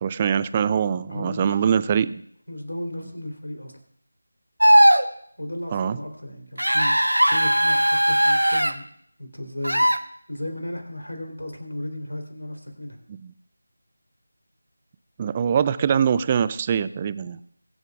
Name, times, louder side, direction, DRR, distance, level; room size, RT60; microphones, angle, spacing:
voice 1, 0.0-2.2 5.7-6.0 13.2-13.3 15.2-17.4, right 7 dB, 20° right, 16 dB, 0.3 m, -23 dB
voice 2, 1.1-1.6 1.9-2.1 2.5-3.7 5.4-7.0 7.2-8.9 9.2-9.9 10.3-13.0, left 1 dB, 80° left, 4 dB, 3.6 m, -35 dB
sound 1, 4.6-5.0 6.6-8.7 9.6-10.0, equal, 90° right, 1.0 m, -18 dB
23.0 x 8.0 x 2.4 m, 0.66 s
figure-of-eight pair, 165°, 0 cm